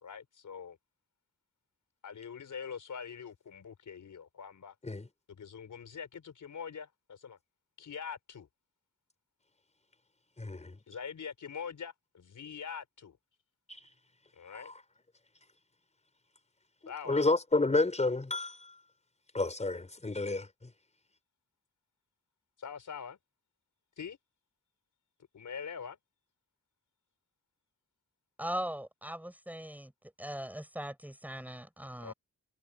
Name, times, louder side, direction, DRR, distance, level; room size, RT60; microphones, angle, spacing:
voice 1, 0.0-0.8 2.0-4.7 5.3-7.4 7.8-8.5 10.9-13.2 14.3-14.7 16.9-17.3 22.6-23.2 24.0-24.2 25.3-26.0 32.0-32.1, left 6 dB, 75° left, 4.8 m, -43 dB
voice 2, 10.4-10.8 13.7-13.8 14.7-14.8 17.1-18.7 19.3-20.5, left 2 dB, 20° left, 5.1 m, -30 dB
voice 3, 28.4-29.9 30.2-32.1, equal, 5° right, 7.0 m, -39 dB
wide cardioid pair, 155°, 31 cm